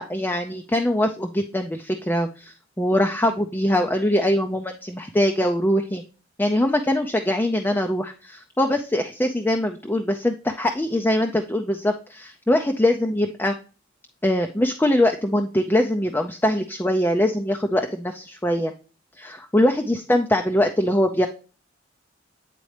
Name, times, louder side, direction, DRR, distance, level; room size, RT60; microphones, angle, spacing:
voice 1, 0.0-6.0 6.4-13.5 14.2-18.7 19.2-21.3, left 1 dB, 10° left, 4 dB, 0.4 m, -22 dB
9.1 x 4.1 x 3.2 m, 0.35 s
head